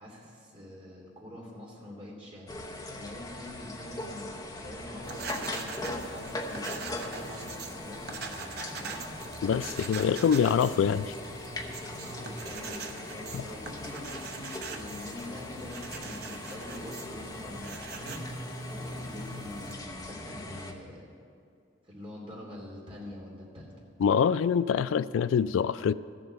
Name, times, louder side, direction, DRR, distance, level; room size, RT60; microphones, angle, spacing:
voice 1, 0.0-2.6 2.9-9.2 12.0-18.2 18.7-21.1 21.8-23.7, left 1 dB, 30° right, -3 dB, 2.9 m, -44 dB
sound 1, 2.5-20.7, left 2 dB, 20° left, 0.8 m, -40 dB
sound 2, 5.0-10.8, left 1 dB, 60° left, 2.4 m, -54 dB
sound 3, 5.0-19.7, right 4 dB, 50° right, 0.9 m, -42 dB
voice 2, 9.4-11.1 13.3-13.4 24.0-25.9, left 7 dB, 80° left, 17 dB, 0.3 m, -25 dB
14.0 x 7.7 x 6.8 m, 2.4 s
head